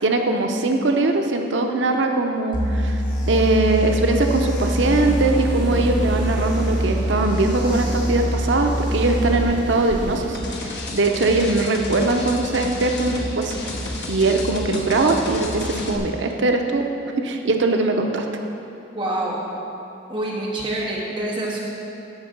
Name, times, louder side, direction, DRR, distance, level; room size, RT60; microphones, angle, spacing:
voice 1, 0.0-10.4 10.9-13.6 14.1-16.8 17.2-18.2, right 2 dB, 85° right, 3 dB, 0.7 m, -21 dB
sound 1, 2.5-9.4, equal, 25° left, 1.4 m, -24 dB
sound 2, 4.8-10.3, equal, 65° right, 1.4 m, -34 dB
sound 3, 10.3-16.0, left 1 dB, 65° left, 1.1 m, -31 dB
voice 2, 18.9-19.4 20.1-21.6, right 1 dB, 25° right, -5 dB, 1.5 m, -26 dB
13.5 x 5.3 x 5.2 m, 2.9 s
head